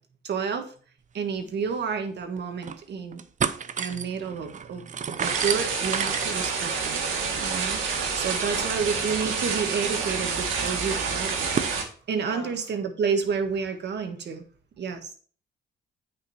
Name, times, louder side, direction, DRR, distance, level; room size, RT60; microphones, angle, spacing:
voice 1, 0.2-0.7 1.1-3.2 3.8-4.9 5.2-7.0 7.4-14.4 14.8-15.1, right 6 dB, 60° right, 6 dB, 1.5 m, -30 dB
sound 1, 1.4-1.5 1.7-1.8 2.4-2.8 3.1-11.8, right 7 dB, 40° right, 0.6 m, -34 dB
sound 2, 5.2-11.8, right 5 dB, 85° right, 2.0 m, -28 dB
voice 2, 7.8-8.2 8.5-8.8 12.1-12.5, left 2 dB, 15° left, 0 dB, 2.3 m, -44 dB
8.9 x 5.3 x 4.3 m, 0.43 s
cardioid pair, 90°, 20 cm